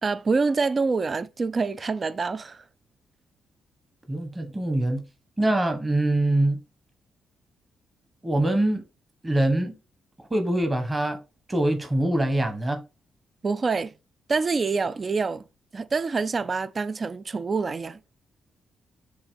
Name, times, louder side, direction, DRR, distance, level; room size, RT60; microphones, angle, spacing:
voice 1, 0.0-2.6 13.4-13.9 14.3-15.4 15.7-18.0, right 4 dB, 40° right, 0.5 m, -26 dB
voice 2, 4.1-5.0 5.4-6.6 8.2-8.8 9.2-9.7 10.2-11.2 11.5-12.8, right 1 dB, 20° right, 1.3 m, -24 dB
6.8 x 2.6 x 5.2 m
cardioid pair, 75°, 0 cm